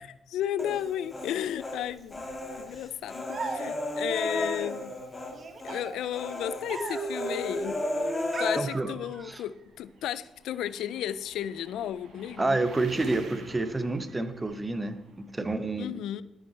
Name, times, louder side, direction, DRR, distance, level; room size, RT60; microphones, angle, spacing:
voice 1, 0.0-2.3 2.6-5.0 5.6-7.8 8.4-12.6 15.8-16.2, left 11 dB, 85° left, 17 dB, 0.4 m, -33 dB
Human voice, 0.6-1.8 2.1-5.3 5.6-5.8 6.1-8.6, left 1 dB, 25° left, 2.4 m, -33 dB
sound 1, 1.4-15.4, right 3 dB, 70° right, 2.5 m, -52 dB
sound 2, 3.3-4.1 5.3-7.3 8.3-9.4, right 4 dB, 40° right, 1.6 m, -39 dB
voice 2, 8.6-8.9 9.2-9.4 12.4-16.0, right 2 dB, 20° right, 11 dB, 1.1 m, -29 dB
13.0 x 9.2 x 4.3 m, 0.89 s
cardioid pair, 85°, 0 cm